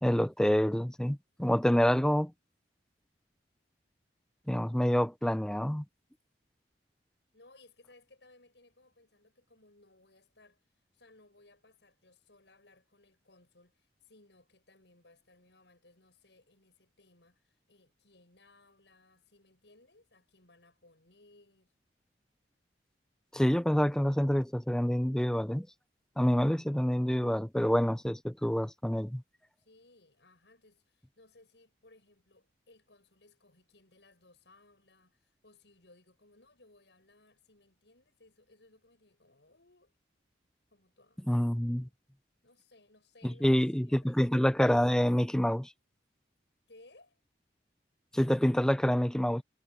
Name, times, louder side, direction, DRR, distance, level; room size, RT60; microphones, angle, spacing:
voice 1, 0.0-2.3 4.5-5.8 23.3-25.7 26.2-29.2 41.3-41.9 43.2-45.7 48.1-49.4, equal, 5° left, 0.4 m, -27 dB
voice 2, 7.3-10.6 10.9-21.7 29.6-39.9 40.7-41.3 42.4-44.2 46.7-47.2, left 2 dB, 80° left, 6.6 m, -62 dB
head